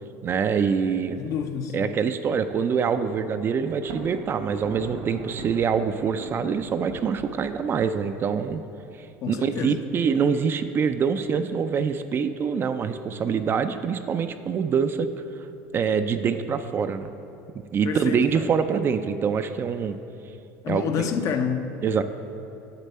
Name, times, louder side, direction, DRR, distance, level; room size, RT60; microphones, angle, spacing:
voice 1, 0.2-1.2 1.7-8.6 9.3-15.1 15.7-17.1 17.7-20.0 20.7-21.1 21.8-22.0, right 6 dB, 35° right, 10 dB, 0.4 m, -25 dB
voice 2, 1.2-1.8 9.2-9.9 17.8-18.5 20.6-21.8, left 7 dB, 50° left, 7 dB, 0.6 m, -28 dB
Thunder, 3.7-8.2, right 4 dB, 60° right, 1.1 m, -40 dB
7.4 x 6.8 x 4.2 m, 2.7 s
supercardioid pair, 105°, 7 cm